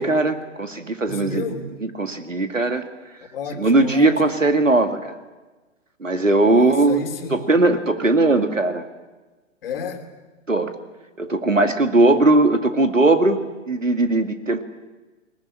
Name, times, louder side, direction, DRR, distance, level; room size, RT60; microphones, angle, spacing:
voice 1, 0.0-1.4 1.8-2.8 3.6-5.2 6.0-7.0 7.3-8.8 10.5-10.7 11.2-13.4 13.7-14.6, right 2 dB, 80° right, 8 dB, 2.2 m, -19 dB
voice 2, 1.1-1.8 3.3-4.4 6.4-7.4 9.6-10.1, left 4 dB, 45° left, 6 dB, 3.1 m, -31 dB
20.5 x 19.5 x 9.9 m, 1.2 s
figure-of-eight pair, 115°, 38 cm